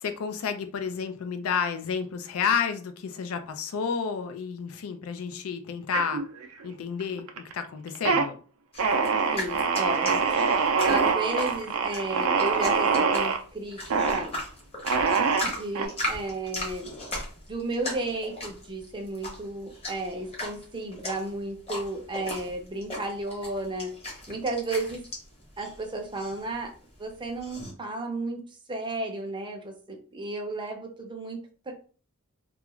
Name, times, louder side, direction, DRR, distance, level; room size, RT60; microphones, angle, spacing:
voice 1, 0.0-6.2 6.6-8.4, left 6 dB, 75° left, 0.4 m, -30 dB
sound 1, 5.9-6.7 7.0-7.5 7.9-8.3 8.8-13.4 13.9-14.2 14.8-15.9, right 5 dB, 75° right, 0.4 m, -24 dB
sound 2, 8.7-27.7, left 1 dB, 30° left, 0.9 m, -38 dB
voice 2, 9.3-10.2 10.9-14.3 15.4-16.9 17.5-23.9 24.3-25.0 25.6-26.7 27.0-28.4 28.7-31.4 31.7-31.8, right 2 dB, 20° right, 0.5 m, -33 dB
2.3 x 2.3 x 2.9 m
head